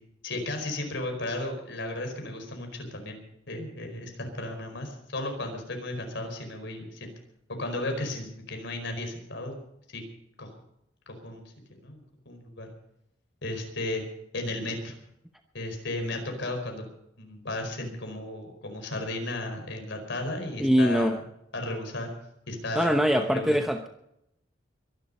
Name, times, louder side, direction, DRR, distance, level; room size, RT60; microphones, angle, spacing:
voice 1, 0.2-3.2 3.5-7.1 7.6-9.5 9.9-10.0 10.4-10.5 11.2-11.4 11.7-12.7 13.4-14.0 14.3-14.9 15.5-16.8 17.2-21.2 21.5-22.1 22.5-23.6, left 1 dB, 65° left, 4 dB, 4.9 m, -34 dB
voice 2, 20.6-21.2 22.8-23.9, equal, ahead, 5 dB, 0.9 m, -23 dB
23.0 x 11.5 x 5.5 m, 0.81 s
head